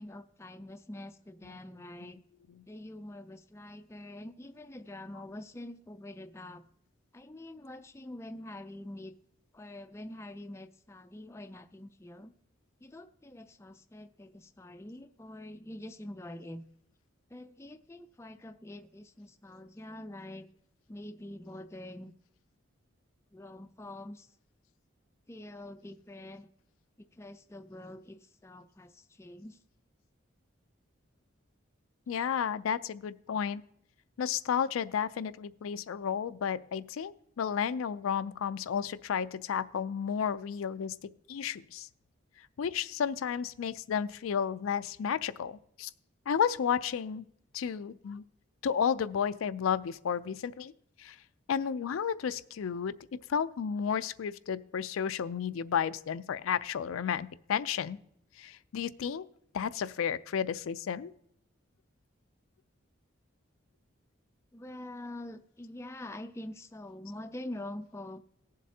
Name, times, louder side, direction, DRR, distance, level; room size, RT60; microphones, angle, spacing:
voice 1, 0.0-2.2 2.7-6.6 7.1-9.1 9.5-12.3 12.8-16.6 17.3-20.5 20.9-22.1 23.3-24.3 25.3-26.5 27.0-29.6 64.5-68.2, left 1 dB, 15° left, 8 dB, 0.3 m, -45 dB
voice 2, 32.1-33.6 34.2-40.9 41.3-41.9 42.6-45.9 46.3-47.2 47.5-48.2 48.6-50.7 51.0-51.2 51.5-52.9 53.3-58.0 58.4-59.2 59.5-61.1, left 7 dB, 90° left, 14 dB, 0.4 m, -32 dB
19.0 x 7.4 x 2.8 m, 0.70 s
head